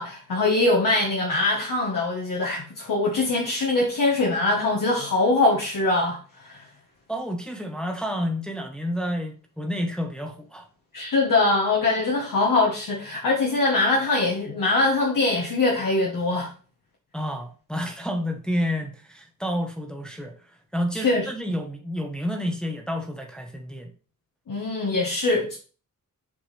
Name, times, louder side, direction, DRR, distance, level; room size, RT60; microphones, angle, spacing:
voice 1, 0.0-6.6 10.9-16.5 21.0-21.2 24.5-25.6, left 2 dB, 65° left, 1.4 m, -23 dB
voice 2, 7.1-10.7 17.1-23.9, equal, ahead, 1.0 m, -30 dB
7.4 x 4.7 x 3.3 m
wide cardioid pair, 110°, 34 cm